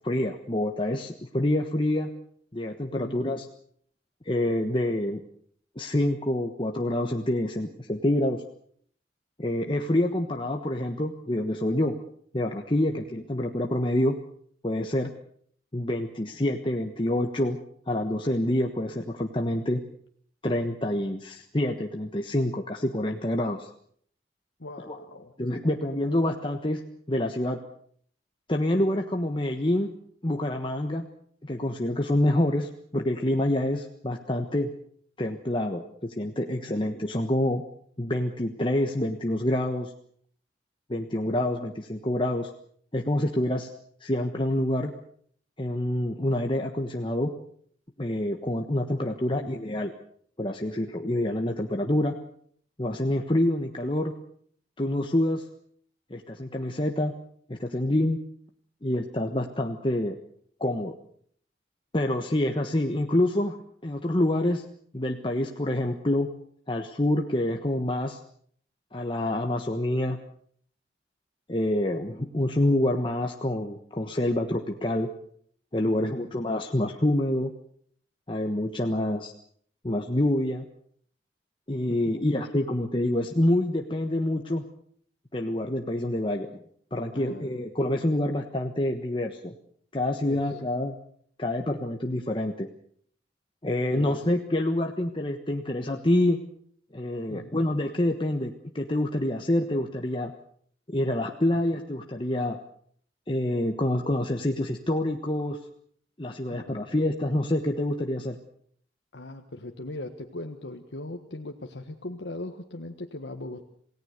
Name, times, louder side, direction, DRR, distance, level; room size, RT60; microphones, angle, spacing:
voice 1, 0.0-2.1 2.5-3.5 4.2-5.2 5.7-8.4 9.4-12.0 12.3-14.1 14.6-15.1 15.7-17.6 17.9-19.8 20.4-23.7 24.9-25.0 25.4-26.8 27.1-27.6 28.5-29.9 30.2-31.1 31.4-34.7 35.2-37.6 38.0-39.9 40.9-42.5 42.9-43.7 44.0-44.9 45.6-47.3 48.0-49.9 50.4-52.1 52.8-54.1 54.8-55.5 56.1-57.1 57.5-58.2 58.8-60.2 60.6-61.0 61.9-63.6 63.8-64.6 64.9-66.3 66.7-68.2 68.9-70.2 71.5-75.1 75.7-77.5 78.3-79.3 79.8-80.6 81.7-84.6 85.3-86.6 86.9-89.5 89.9-90.9 91.4-92.7 93.6-96.4 96.9-100.3 100.9-102.6 103.3-105.6 106.2-108.4, left 1 dB, 30° left, 3 dB, 1.3 m, -27 dB
voice 2, 3.0-3.5 12.9-13.0 24.6-25.4 36.7-36.8 49.3-49.5 75.9-76.3 81.9-82.2 87.1-87.6 90.2-90.4 93.9-94.3 97.3-97.6 106.5-106.8 109.1-113.6, left 2 dB, 90° left, 3 dB, 1.5 m, -40 dB
28.0 x 17.5 x 6.7 m, 0.62 s
head